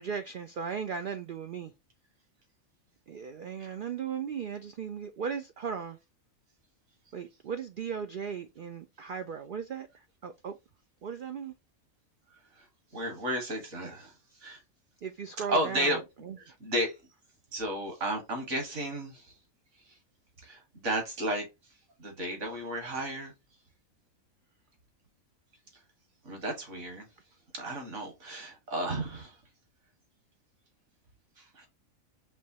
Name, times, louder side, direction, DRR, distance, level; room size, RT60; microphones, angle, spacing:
voice 1, 0.0-1.7 3.1-6.0 7.1-9.9 10.2-10.5 11.0-11.5 15.0-16.4, right 7 dB, 80° right, 0.4 m, -37 dB
voice 2, 12.9-14.1 14.4-14.6 15.4-16.0 16.4-17.0 17.5-19.3 20.4-21.5 22.0-23.3 26.2-27.1 27.5-29.4 31.4-31.7, right 1 dB, 55° right, 1.9 m, -33 dB
5.3 x 3.1 x 2.8 m
omnidirectional pair, 1.5 m